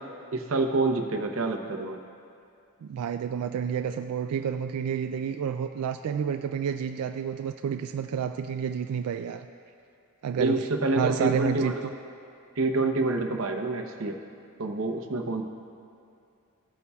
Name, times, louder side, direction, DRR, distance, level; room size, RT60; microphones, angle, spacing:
voice 1, 0.3-2.0 10.4-11.9 12.6-14.2 14.6-15.4, right 2 dB, 60° right, 4 dB, 0.7 m, -27 dB
voice 2, 2.8-9.5 10.2-10.7 11.0-11.9, right 7 dB, 85° right, 8 dB, 0.3 m, -30 dB
16.5 x 8.2 x 2.3 m, 2.5 s
head